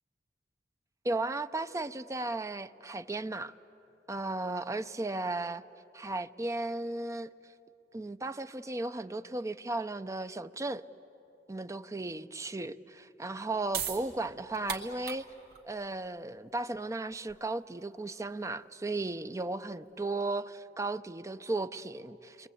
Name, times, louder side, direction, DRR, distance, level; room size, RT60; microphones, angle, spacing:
voice 1, 1.0-3.5 4.1-5.6 5.9-7.3 7.9-10.8 11.5-15.2 15.6-22.5, right 2 dB, 20° right, 0.5 m, -35 dB
sound 1, 13.3-20.0, right 8 dB, 60° right, 2.0 m, -42 dB
29.5 x 22.5 x 8.5 m
head